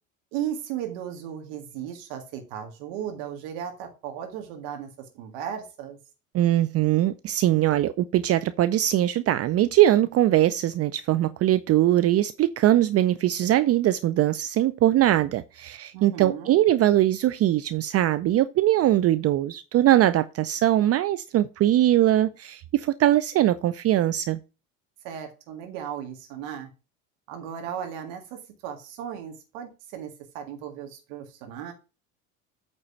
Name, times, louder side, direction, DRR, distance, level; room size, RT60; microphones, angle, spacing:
voice 1, 0.3-6.0 15.9-16.6 25.0-26.7 27.3-31.7, right 9 dB, 65° right, 2.0 m, -36 dB
voice 2, 6.3-24.4, right 13 dB, 35° right, 0.5 m, -21 dB
8.7 x 4.0 x 5.6 m
hypercardioid pair, 75°, 41 cm